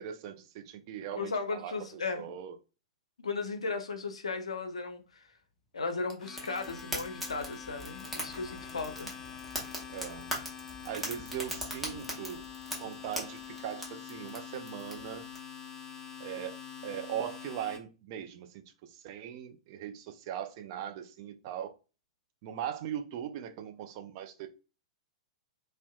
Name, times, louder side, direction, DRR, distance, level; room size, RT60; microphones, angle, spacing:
voice 1, 0.0-2.5 9.9-10.3 10.8-12.5 12.8-15.3 16.2-16.6 16.8-21.8 22.4-24.5, right 10 dB, 45° right, 0.4 m, -40 dB
voice 2, 1.1-2.3 3.2-5.2 5.7-9.1, left 4 dB, 75° left, 0.5 m, -36 dB
Domestic sounds home sounds, 5.9-17.8, left 7 dB, 20° left, 0.5 m, -45 dB
Fire, 6.4-15.4, equal, ahead, 0.8 m, -41 dB
2.6 x 2.1 x 2.3 m
figure-of-eight pair, 105°, 3 cm